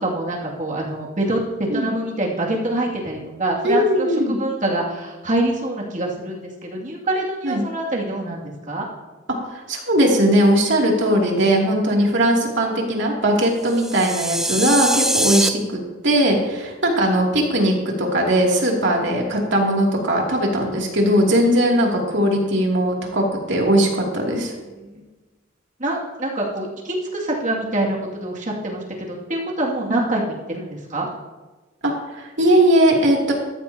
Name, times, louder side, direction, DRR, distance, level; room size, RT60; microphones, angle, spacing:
voice 1, 0.0-1.4 1.7-8.8 24.8-25.0 25.8-28.0 28.2-31.1, right 1 dB, 40° right, -2 dB, 2.5 m, -25 dB
voice 2, 3.6-4.4 7.4-7.6 9.5-24.5 29.9-30.0 31.8-33.3, right 1 dB, 60° right, -1 dB, 2.8 m, -19 dB
sound 1, 13.7-15.5, right 1 dB, ahead, 0.4 m, -23 dB
14.5 x 13.5 x 2.9 m, 1.2 s
head